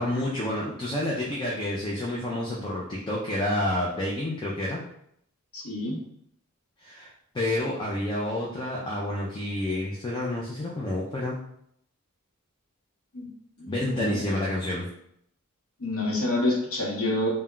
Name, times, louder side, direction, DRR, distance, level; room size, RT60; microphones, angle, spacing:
voice 1, 0.0-4.8 6.8-11.4 13.7-14.8, left 1 dB, 20° left, -4 dB, 0.3 m, -29 dB
voice 2, 5.5-6.0 13.1-13.3 13.6-14.2 15.8-17.3, left 2 dB, 75° left, -3 dB, 0.8 m, -28 dB
2.2 x 2.1 x 3.6 m, 0.71 s
head